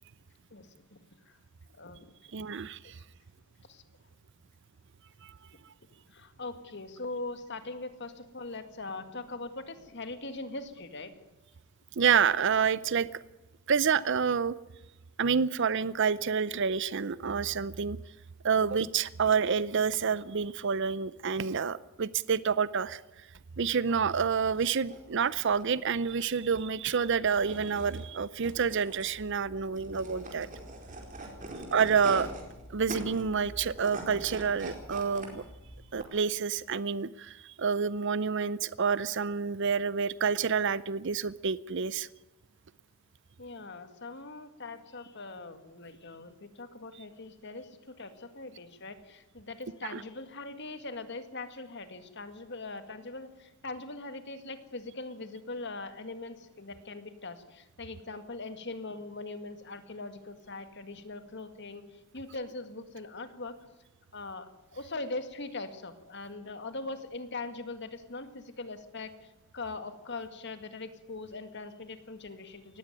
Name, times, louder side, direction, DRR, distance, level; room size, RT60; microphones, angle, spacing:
voice 1, 0.5-1.0 1.7-2.0 2.8-2.9 3.7-3.8 6.1-11.1 31.4-31.6 43.4-61.9 62.1-63.6 64.1-69.1 69.5-72.8, left 3 dB, 50° left, 9 dB, 1.9 m, -41 dB
voice 2, 2.3-2.9 5.2-5.3 12.0-13.1 13.7-14.5 15.2-18.0 18.4-23.0 23.6-30.5 31.7-32.3 32.7-35.4 35.9-42.1 49.9-50.0, right 6 dB, 55° right, 18 dB, 0.6 m, -28 dB
sound 1, 24.3-36.0, right 1 dB, 35° right, 4.4 m, -44 dB
19.0 x 15.5 x 9.1 m, 1.0 s
head